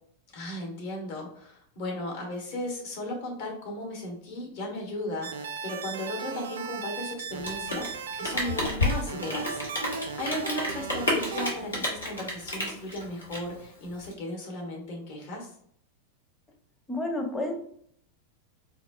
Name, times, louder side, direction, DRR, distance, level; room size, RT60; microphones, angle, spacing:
voice 1, 0.3-15.5, left 1 dB, 50° left, -1 dB, 1.3 m, -36 dB
sound 1, 5.2-11.5, right 5 dB, 65° right, 0.3 m, -37 dB
Rain, 7.3-14.1, left 1 dB, 75° left, 1.2 m, -31 dB
voice 2, 16.9-17.5, left 1 dB, 10° left, 2 dB, 0.7 m, -30 dB
4.1 x 2.9 x 2.4 m, 0.65 s
figure-of-eight pair, 90°, 0 cm